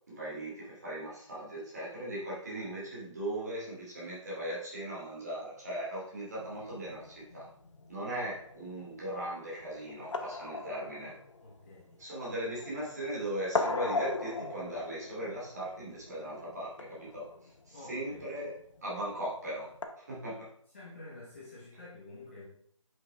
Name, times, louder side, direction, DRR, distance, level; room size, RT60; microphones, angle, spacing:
voice 1, 0.1-7.5 7.9-11.2 12.0-18.6 18.8-20.5, right 1 dB, 30° right, -6 dB, 2.5 m, -38 dB
sound 1, 6.4-19.8, left 3 dB, 65° left, 0.9 m, -39 dB
voice 2, 11.4-12.0 17.7-18.2 20.7-22.5, left 2 dB, 25° left, -7 dB, 1.3 m, -49 dB
7.2 x 5.6 x 3.4 m, 0.65 s
hypercardioid pair, 180°, 17 cm